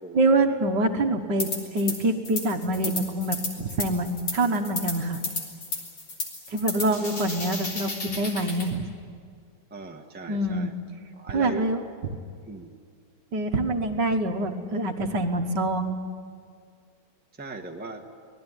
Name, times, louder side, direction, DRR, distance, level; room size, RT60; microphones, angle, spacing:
voice 1, 0.1-5.2 6.5-8.9 10.3-10.7 11.3-11.8 13.3-16.0, right 2 dB, 60° right, 5 dB, 1.8 m, -25 dB
sound 1, 1.4-2.0 2.2-8.7, left 3 dB, 75° left, 4.6 m, -33 dB
voice 2, 6.7-7.2 9.7-10.7 11.2-11.6 12.5-12.7 17.4-18.0, right 2 dB, 5° right, 2 dB, 1.2 m, -38 dB
25.0 x 19.5 x 9.8 m, 2.1 s
omnidirectional pair, 2.3 m